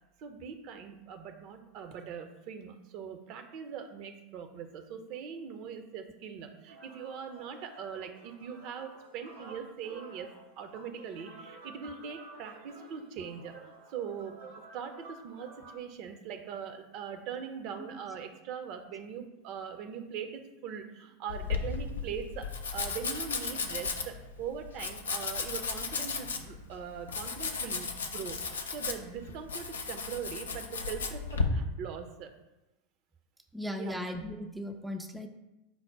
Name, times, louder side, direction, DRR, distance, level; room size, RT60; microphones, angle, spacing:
voice 1, 0.2-10.3 10.6-14.4 14.7-28.4 28.7-32.3 33.7-34.0, right 7 dB, 50° right, 6 dB, 0.5 m, -41 dB
sound 1, 6.7-15.8, right 3 dB, 75° right, 0.9 m, -52 dB
Domestic sounds home sounds, 21.3-31.4, left 5 dB, 85° left, 0.4 m, -35 dB
voice 2, 33.5-35.3, left 1 dB, 5° right, 4 dB, 0.4 m, -37 dB
5.3 x 2.1 x 4.5 m, 0.97 s
hypercardioid pair, 90°, 0 cm